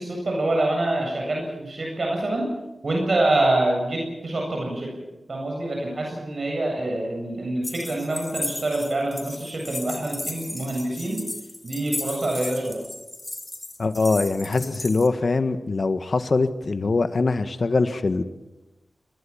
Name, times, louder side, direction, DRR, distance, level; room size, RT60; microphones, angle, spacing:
voice 1, 0.0-2.5 2.8-4.9 5.3-11.2 11.6-12.8, right 2 dB, 60° right, 0 dB, 7.8 m, -26 dB
sound 1, 7.6-15.1, left 1 dB, 25° left, 3.2 m, -35 dB
voice 2, 13.8-18.2, left 3 dB, 60° left, 10 dB, 1.6 m, -23 dB
26.0 x 20.5 x 7.3 m, 1.0 s
wide cardioid pair, 65°, 0 cm